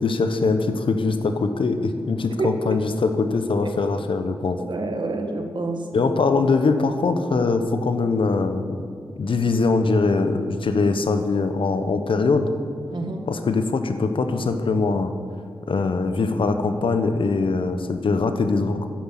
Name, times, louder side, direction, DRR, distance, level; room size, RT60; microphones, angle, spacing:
voice 1, 0.0-4.6 5.9-8.8 9.2-12.5 13.3-15.1 15.7-18.9, left 4 dB, 70° left, 8 dB, 1.0 m, -22 dB
voice 2, 2.3-2.8 4.7-5.9 12.9-13.3, right 2 dB, 55° right, 4 dB, 1.7 m, -28 dB
10.5 x 9.8 x 7.5 m, 2.1 s
wide cardioid pair, 85°, 9 cm